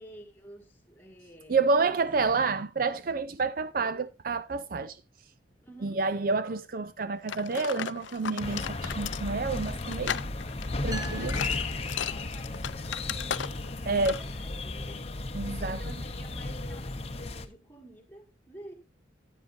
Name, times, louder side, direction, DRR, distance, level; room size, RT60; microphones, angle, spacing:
voice 1, 0.0-1.7 2.4-2.7 5.6-6.0 11.1-15.1 15.7-18.7, right 1 dB, 10° left, 2.0 m, -51 dB
voice 2, 1.5-5.0 5.8-10.2 10.8-11.3 13.9-14.1 15.3-15.8, right 4 dB, 50° right, 0.4 m, -29 dB
sound 1, 7.3-13.8 14.0-14.3, left 9 dB, 75° left, 0.4 m, -36 dB
bologna countryside birds, 8.4-17.5, left 2 dB, 30° left, 0.8 m, -35 dB
sound 2, 10.9-12.7, right 1 dB, 20° right, 1.2 m, -43 dB
13.0 x 8.8 x 2.6 m
head